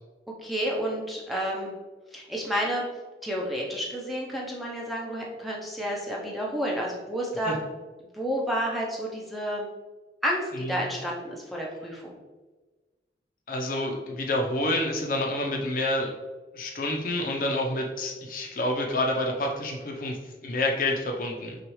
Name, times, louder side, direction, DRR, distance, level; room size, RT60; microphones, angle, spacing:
voice 1, 0.3-1.7 2.1-2.9 3.2-7.6 8.1-9.7 10.2-12.1, equal, ahead, -3 dB, 0.6 m, -30 dB
voice 2, 10.5-10.9 13.5-16.1 16.5-20.2 20.4-21.6, left 1 dB, 50° left, 2 dB, 0.6 m, -28 dB
6.0 x 2.4 x 3.1 m, 1.3 s
head